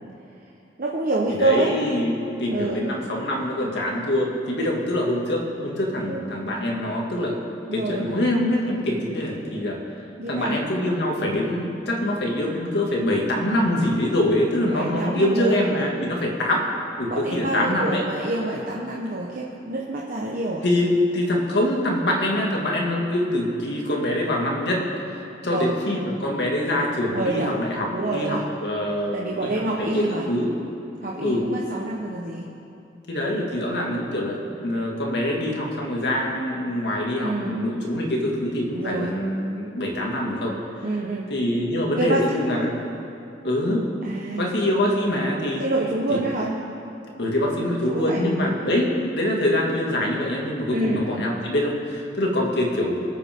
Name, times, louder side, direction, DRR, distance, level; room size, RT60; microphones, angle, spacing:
voice 1, 0.8-1.7 2.5-2.9 4.6-4.7 6.1-6.2 7.7-8.1 10.2-10.6 14.7-15.6 17.1-20.6 25.5-25.7 27.1-27.5 27.9-28.4 28.9-30.3 31.0-32.5 33.7-34.0 37.2-37.6 38.7-39.1 40.8-41.3 42.0-42.2 44.0-44.4 45.6-46.5 47.9-48.2 50.7-51.0, right 2 dB, 50° right, -3 dB, 1.2 m, -27 dB
voice 2, 1.4-7.4 7.7-9.8 10.3-16.6 17.0-18.0 20.6-24.8 25.4-30.5 31.2-31.5 33.1-40.5 41.3-42.7 43.4-43.8 44.4-45.6 46.1-46.2 47.2-53.0, left 1 dB, 65° left, -1 dB, 2.3 m, -24 dB
24.0 x 8.7 x 3.8 m, 2.7 s
head